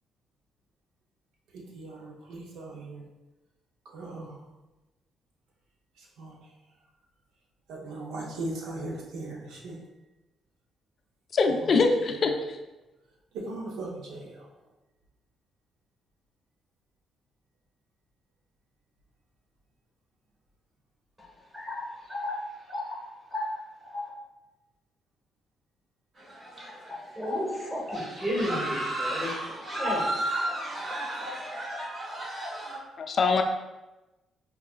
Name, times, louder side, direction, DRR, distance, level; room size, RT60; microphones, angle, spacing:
voice 1, 1.5-3.0 3.9-4.4 6.2-6.4 7.7-9.8 11.6-12.2 13.3-14.4, right 2 dB, 85° right, -1 dB, 0.6 m, -38 dB
voice 2, 11.3-12.6 33.0-33.4, left 4 dB, 50° left, 5 dB, 0.4 m, -23 dB
voice 3, 21.2-24.1 26.3-30.9 31.1-31.4, left 1 dB, 20° right, -3 dB, 1.2 m, -34 dB
sound 1, 26.2-27.0 27.3-27.5 27.9-32.8, right 1 dB, 40° right, 1.2 m, -33 dB
4.6 x 2.3 x 2.4 m, 1.1 s
cardioid pair, 90°, 0 cm